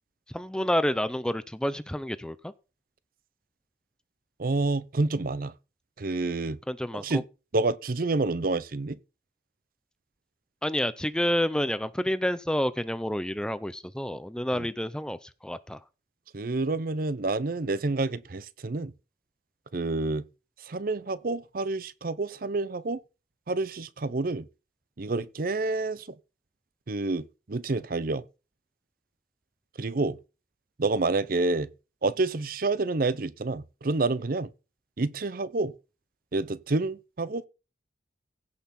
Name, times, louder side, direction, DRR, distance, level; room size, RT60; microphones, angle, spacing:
voice 1, 0.3-2.5 6.7-7.2 10.6-15.8, equal, 5° left, 0.4 m, -29 dB
voice 2, 4.4-5.5 6.0-6.6 6.9-7.2 7.5-9.0 14.5-14.7 16.3-18.9 19.7-20.2 20.6-23.0 23.5-24.5 25.0-26.1 26.9-28.2 29.8-30.2 30.8-31.7 32.0-34.5 35.0-35.7 36.3-37.5, right 3 dB, 50° right, 0.6 m, -28 dB
16.0 x 5.7 x 4.2 m
head